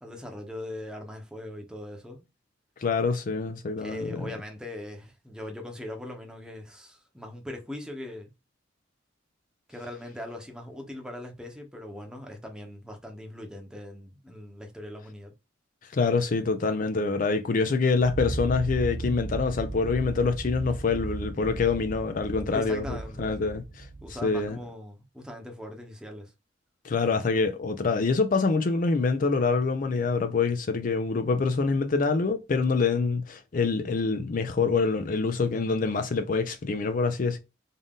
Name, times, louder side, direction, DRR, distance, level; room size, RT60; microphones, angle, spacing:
voice 1, 0.0-2.2 3.8-8.3 9.7-15.3 22.5-23.6 24.0-26.3, left 1 dB, 5° right, 0.8 m, -40 dB
voice 2, 2.8-4.3 15.9-23.9 24.2-24.6 26.8-37.4, left 4 dB, 45° left, 0.4 m, -26 dB
sound 1, 18.0-24.5, right 2 dB, 65° right, 0.6 m, -36 dB
3.7 x 2.6 x 3.5 m
head